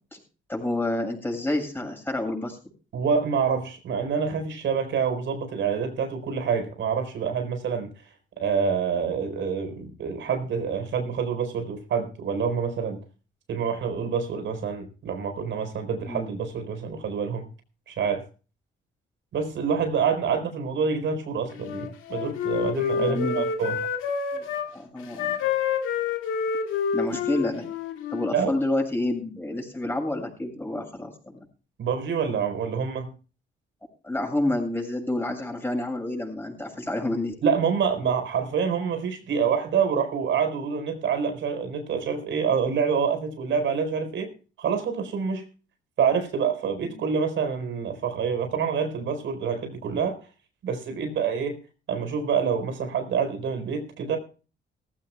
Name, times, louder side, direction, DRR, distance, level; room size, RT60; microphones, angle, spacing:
voice 1, 0.5-2.6 16.1-16.3 23.1-23.4 24.3-24.5 24.7-25.4 26.9-27.6 28.1-31.4 34.0-37.3, left 1 dB, 10° left, 3 dB, 7.4 m, -29 dB
voice 2, 2.9-8.1 8.4-13.0 13.5-17.5 17.9-18.2 19.3-23.8 28.3-28.5 31.8-33.1 37.4-44.3 44.6-45.4 46.0-50.3 50.6-51.6 51.9-54.2, right 6 dB, 70° right, 7 dB, 4.5 m, -27 dB
Wind instrument woodwind instrument, 21.5-24.7 25.2-28.3, left 6 dB, 90° left, 2.1 m, -28 dB
19.0 x 15.5 x 2.3 m, 0.36 s
cardioid pair, 90°, 20 cm